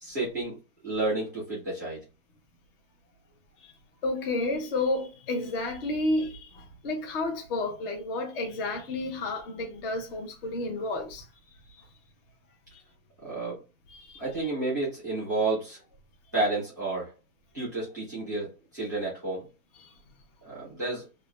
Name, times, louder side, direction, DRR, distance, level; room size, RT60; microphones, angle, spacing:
voice 1, 0.0-0.6 0.8-2.0 13.2-13.6 14.2-15.8 16.3-17.1 17.5-19.4 20.4-21.0, right 2 dB, 15° right, 0.3 m, -30 dB
voice 2, 4.0-11.2 13.9-14.1 19.8-19.9, left 2 dB, 40° left, 0.5 m, -31 dB
2.3 x 2.2 x 2.9 m
hypercardioid pair, 160°, 47 cm